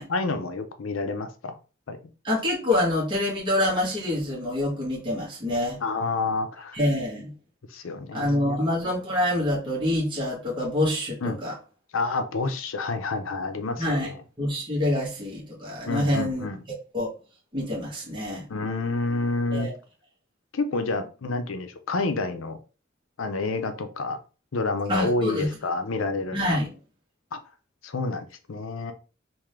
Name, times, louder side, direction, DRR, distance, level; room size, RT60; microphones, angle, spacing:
voice 1, 0.1-1.5 1.9-2.0 5.8-6.8 7.7-8.6 11.2-11.4 11.9-14.2 15.9-16.6 18.5-19.7 20.5-22.6 23.2-24.2 24.5-26.6 27.3-27.4 27.8-28.9, left 3 dB, 80° left, 0.6 m, -29 dB
voice 2, 2.2-5.8 6.7-7.3 8.1-11.5 13.8-14.1 14.4-16.4 16.9-17.1 17.5-18.4 19.5-19.7 24.9-25.5 26.3-26.7, left 1 dB, 25° right, 1.4 m, -26 dB
3.7 x 2.6 x 3.2 m
head